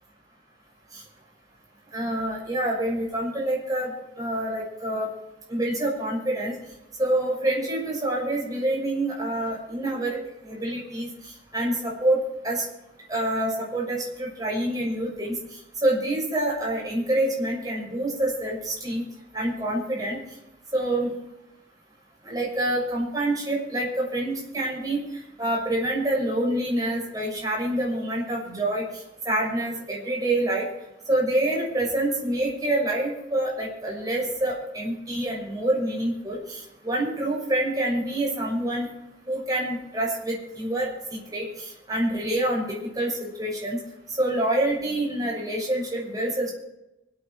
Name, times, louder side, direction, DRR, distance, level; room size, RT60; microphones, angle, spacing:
voice 1, 1.9-3.9 4.2-5.1 5.5-6.5 7.0-10.2 10.4-11.1 11.5-12.2 12.4-12.6 13.1-15.4 15.8-19.0 19.3-20.2 20.7-21.1 22.2-25.0 25.4-28.8 29.2-30.7 31.1-38.9 39.3-43.8 44.2-46.5, right 1 dB, 20° right, -3 dB, 6.5 m, -26 dB
25.5 x 8.9 x 4.6 m, 0.91 s
head